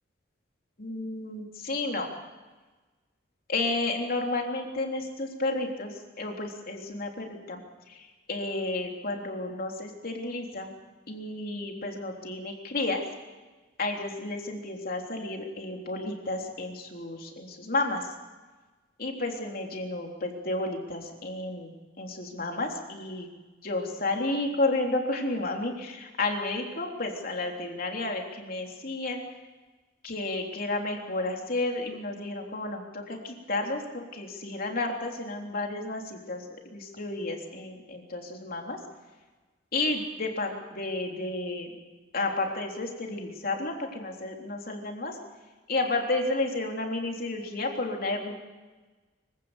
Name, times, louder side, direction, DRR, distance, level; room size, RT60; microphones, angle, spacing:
voice 1, 0.8-2.1 3.5-7.6 8.3-10.7 11.1-13.0 13.8-18.0 19.0-21.7 22.0-23.3 23.6-29.2 30.0-36.4 36.7-38.8 39.7-41.7 42.1-45.1 45.7-48.3, left 2 dB, 50° left, 2 dB, 3.6 m, -31 dB
25.0 x 16.0 x 8.1 m, 1.3 s
head